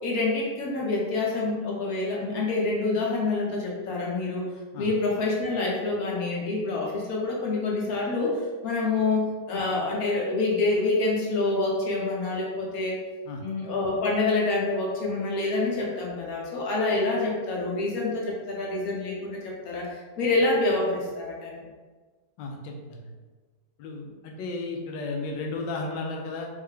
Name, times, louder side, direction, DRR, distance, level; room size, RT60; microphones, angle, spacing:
voice 1, 0.0-4.5 4.8-13.0 13.4-21.5, left 3 dB, 60° left, -2 dB, 1.2 m, -27 dB
voice 2, 22.4-23.1 23.8-26.5, left 3 dB, 85° left, 1 dB, 1.3 m, -34 dB
3.3 x 3.1 x 3.5 m, 1.3 s
omnidirectional pair, 1.9 m